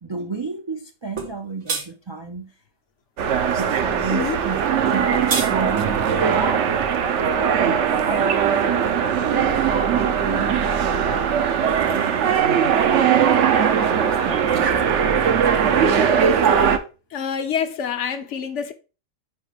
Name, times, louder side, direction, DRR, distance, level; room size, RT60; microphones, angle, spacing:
voice 1, 0.0-2.5 3.5-4.7 4.9-16.3, right 4 dB, 40° right, 0.4 m, -33 dB
sound 1, 1.2-1.3 1.7-1.9 4.9-5.5, right 4 dB, 85° right, 1.8 m, -25 dB
sound 2, 3.2-16.8, right 7 dB, 65° right, 1.0 m, -20 dB
voice 2, 17.1-18.7, left 7 dB, 65° left, 1.0 m, -26 dB
5.1 x 4.4 x 5.0 m
omnidirectional pair, 1.4 m